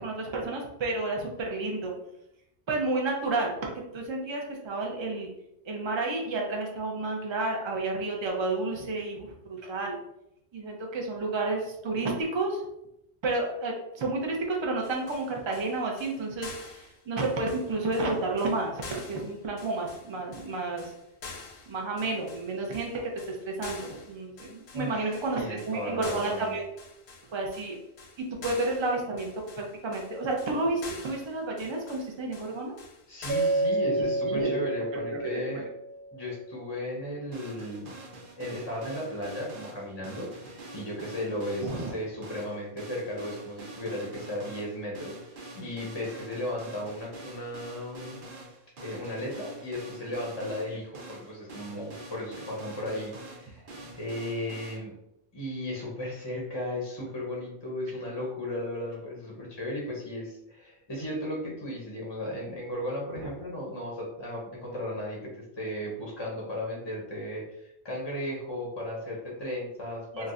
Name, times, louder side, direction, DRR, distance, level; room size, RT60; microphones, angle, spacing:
voice 1, 0.0-2.0 2.7-5.3 5.6-10.0 10.5-12.6 13.2-20.9 21.7-26.6 27.2-27.8 28.2-29.3 29.5-32.7 33.9-34.5 34.9-35.7 41.6-41.9 53.8-53.9 63.2-63.3 70.1-70.3, right 2 dB, 35° right, 0 dB, 0.5 m, -31 dB
sound 1, 14.8-33.7, left 4 dB, 80° left, 0.9 m, -46 dB
voice 2, 24.7-26.5 33.1-35.6 36.1-37.9 38.4-45.2 45.5-48.2 48.8-53.7 54.0-54.9 55.3-65.3 65.6-70.3, left 1 dB, 30° left, -3 dB, 0.6 m, -35 dB
Mallet percussion, 33.3-36.3, right 2 dB, 85° right, 1.3 m, -29 dB
sound 2, 37.3-54.8, right 2 dB, 60° right, 0.8 m, -45 dB
4.0 x 2.1 x 2.4 m, 0.80 s
omnidirectional pair, 1.1 m